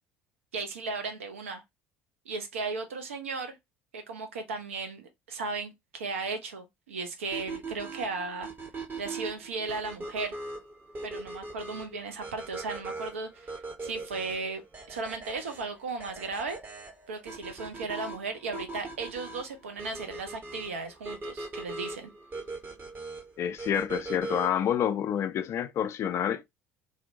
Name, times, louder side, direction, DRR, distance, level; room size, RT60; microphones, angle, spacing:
voice 1, 0.5-1.6 2.3-3.6 3.9-8.5 9.0-10.4 11.0-13.5 13.8-14.6 14.9-16.6 17.1-22.1, right 4 dB, 75° right, 0.5 m, -36 dB
sound 1, 7.3-24.7, right 3 dB, 25° right, 0.8 m, -40 dB
voice 2, 23.4-26.5, left 9 dB, 40° left, 0.3 m, -28 dB
2.6 x 2.1 x 2.6 m
figure-of-eight pair, 60°, 7 cm